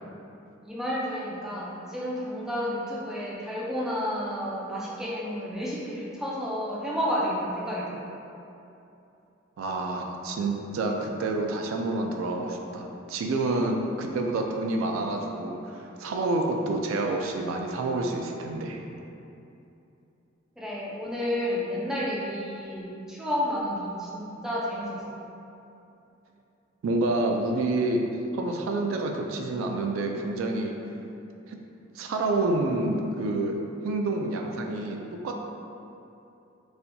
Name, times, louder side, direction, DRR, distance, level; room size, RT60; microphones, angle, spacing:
voice 1, 0.6-8.0 20.6-25.0, equal, 5° right, -7 dB, 0.4 m, -31 dB
voice 2, 9.6-18.8 26.8-28.0 28.3-30.7 31.5-31.6 31.9-33.6 33.8-35.0 35.2-35.4, right 2 dB, 80° right, 2 dB, 0.3 m, -28 dB
4.2 x 2.6 x 2.2 m, 2.8 s
head